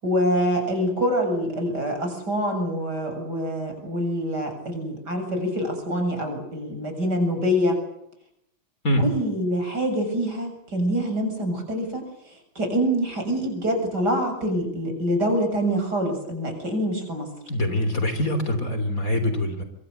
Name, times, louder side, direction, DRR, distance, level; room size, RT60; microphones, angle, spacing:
voice 1, 0.0-7.8 9.0-12.0 12.6-17.3, equal, 55° right, 5 dB, 8.0 m, -25 dB
voice 2, 17.5-19.6, left 1 dB, 40° left, 9 dB, 3.8 m, -24 dB
26.5 x 24.0 x 8.0 m, 0.76 s
omnidirectional pair, 2.2 m